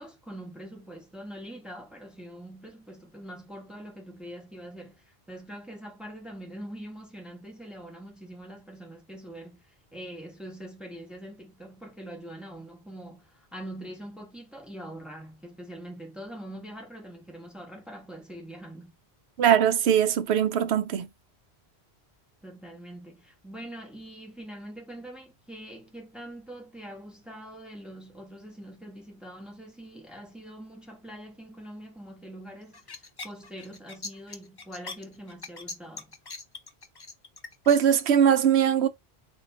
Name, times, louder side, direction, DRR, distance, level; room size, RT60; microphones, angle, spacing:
voice 1, 0.0-18.9 22.4-36.1, right 1 dB, ahead, 1.1 m, -43 dB
voice 2, 19.4-21.1 37.7-38.9, right 9 dB, 85° right, 0.9 m, -21 dB
sound 1, 32.7-38.1, left 3 dB, 30° left, 0.5 m, -40 dB
4.0 x 2.6 x 4.1 m
omnidirectional pair, 1.1 m